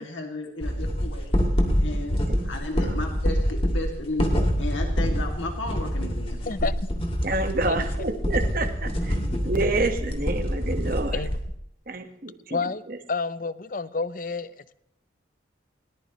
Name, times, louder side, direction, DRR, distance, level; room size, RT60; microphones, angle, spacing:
voice 1, 0.0-1.4 1.8-6.7, left 2 dB, 90° left, 2 dB, 2.3 m, -34 dB
sound 1, 0.6-11.4, equal, 30° left, 2.2 m, -26 dB
voice 2, 2.3-3.0 7.2-9.1 9.4-11.2 11.9-12.6, right 2 dB, 45° right, 6 dB, 1.5 m, -28 dB
voice 3, 12.5-12.8 13.1-14.8, left 4 dB, 45° left, 16 dB, 0.6 m, -29 dB
20.5 x 18.5 x 3.1 m, 0.76 s
head